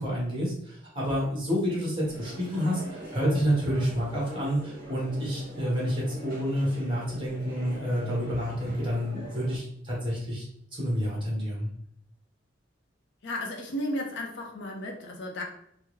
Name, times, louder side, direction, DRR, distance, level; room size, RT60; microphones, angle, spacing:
voice 1, 0.0-10.4 10.7-11.7, equal, 25° right, -4 dB, 1.2 m, -29 dB
sound 1, 2.0-9.6, right 1 dB, 50° right, 1.0 m, -43 dB
voice 2, 13.2-15.4, left 1 dB, 65° left, 0 dB, 0.6 m, -34 dB
3.4 x 2.0 x 3.1 m, 0.70 s
head